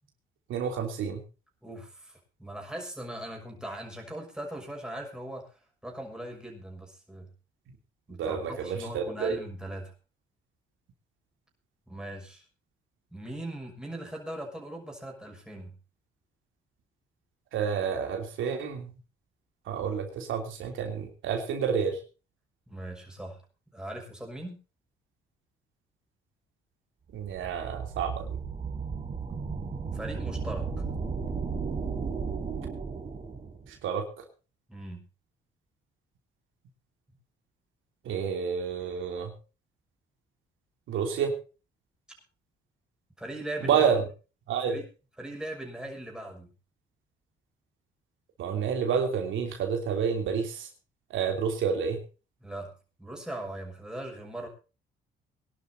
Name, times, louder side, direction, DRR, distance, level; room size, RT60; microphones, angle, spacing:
voice 1, 0.5-1.2 8.2-9.4 17.5-19.0 19.7-22.0 27.1-28.4 33.8-34.0 38.0-39.3 40.9-41.3 43.6-44.0 44.5-44.8 48.4-50.7 51.1-52.0, right 7 dB, 80° right, 3 dB, 3.3 m, -29 dB
voice 2, 1.6-5.5 5.8-7.3 8.1-9.9 11.9-12.4 13.1-15.7 22.7-23.4 23.7-24.6 29.9-30.7 34.7-35.0 43.2-43.8 44.7-44.8 45.2-46.5 52.4-52.7 53.0-54.5, right 1 dB, 5° right, 1 dB, 6.3 m, -39 dB
sound 1, 27.2-33.7, right 5 dB, 35° right, 4.0 m, -34 dB
23.5 x 11.5 x 2.9 m, 0.33 s
cardioid pair, 90°, 20 cm